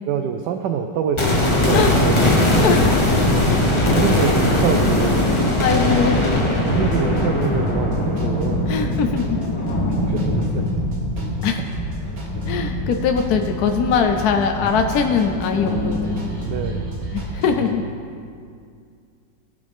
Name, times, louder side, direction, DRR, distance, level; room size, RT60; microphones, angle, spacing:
voice 1, 0.1-2.3 3.4-5.3 6.6-8.7 9.6-10.6 16.4-17.0, right 7 dB, 75° right, 5 dB, 1.2 m, -26 dB
sound 1, 1.2-11.2 11.5-11.6, left 2 dB, 20° left, 0.9 m, -20 dB
sound 2, 1.2-17.7, right 3 dB, 50° right, 2.2 m, -32 dB
sound 3, 2.3-16.8, left 1 dB, 90° left, 2.3 m, -26 dB
voice 2, 2.6-3.0 3.5-3.6 5.6-6.2 8.7-9.5 11.4-11.6 12.5-16.2 17.1-17.8, left 6 dB, 65° left, 5 dB, 1.0 m, -21 dB
19.0 x 7.3 x 3.5 m, 2.3 s
omnidirectional pair, 2.0 m